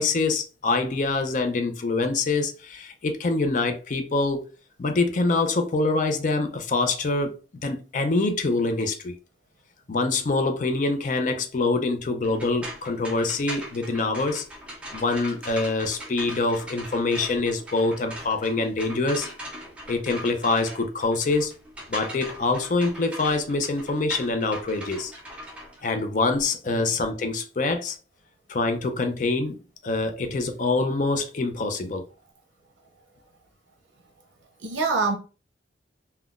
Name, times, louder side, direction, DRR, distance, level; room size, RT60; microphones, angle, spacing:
voice 1, 0.0-4.4 4.8-7.3 7.6-9.2 9.9-14.5 14.9-19.3 19.9-21.5 21.9-25.1 25.8-28.0 28.5-29.6 29.8-32.0, left 3 dB, 45° left, 0.4 m, -25 dB
sound 1, 12.2-26.4, equal, 5° right, 0.5 m, -40 dB
voice 2, 34.6-35.2, right 4 dB, 75° right, 0.6 m, -25 dB
3.7 x 2.1 x 2.4 m
head